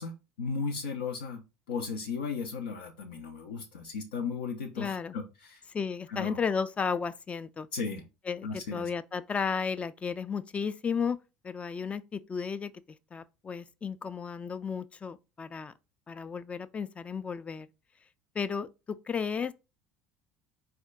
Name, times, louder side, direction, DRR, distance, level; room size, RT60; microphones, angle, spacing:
voice 1, 0.0-1.4 1.7-5.6 6.1-6.4 7.7-8.1 8.4-8.9, left 5 dB, 80° left, 0.6 m, -35 dB
voice 2, 4.8-5.1 5.7-7.7 8.3-11.2 11.4-12.7 13.1-15.7 16.1-17.7 18.4-19.5, left 6 dB, 25° left, 0.4 m, -33 dB
4.2 x 2.2 x 3.6 m
hypercardioid pair, 70°, 5 cm